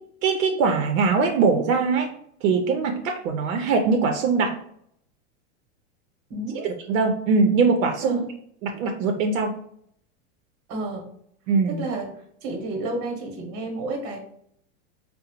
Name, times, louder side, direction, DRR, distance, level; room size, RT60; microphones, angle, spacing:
voice 1, 0.2-2.1 2.4-4.6 6.5-8.2 8.6-9.5 11.5-11.8, right 4 dB, 70° right, 4 dB, 0.6 m, -22 dB
voice 2, 6.3-6.7 8.0-8.2 10.7-11.1 11.7-14.2, right 2 dB, 35° right, 3 dB, 0.9 m, -31 dB
3.8 x 2.1 x 2.8 m, 0.66 s
supercardioid pair, 140°, 41 cm